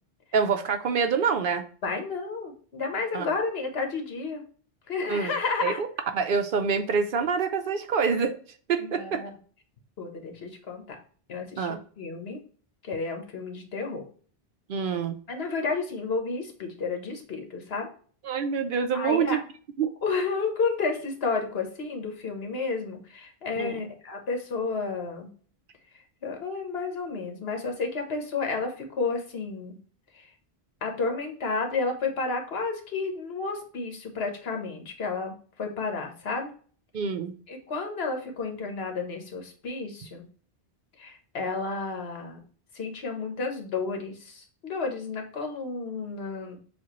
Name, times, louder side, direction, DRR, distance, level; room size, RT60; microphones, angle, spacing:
voice 1, 0.3-1.7 3.1-3.3 5.1-5.3 5.6-5.9 6.1-8.4 8.7-9.2 11.6-11.8 14.7-15.1 18.2-19.4 19.8-19.9 23.6-23.9 36.9-37.3, right 6 dB, 60° right, 7 dB, 0.7 m, -26 dB
voice 2, 1.8-4.4 4.9-5.8 8.8-9.3 10.0-11.0 11.3-11.7 12.0-12.4 12.8-14.0 15.3-17.9 18.9-19.4 20.0-25.3 26.2-29.8 30.2-30.3 30.8-36.5 37.5-40.2 41.0-42.4 42.7-46.6, left 4 dB, 75° left, 4 dB, 1.3 m, -31 dB
7.1 x 2.4 x 3.0 m, 0.42 s
omnidirectional pair, 1.0 m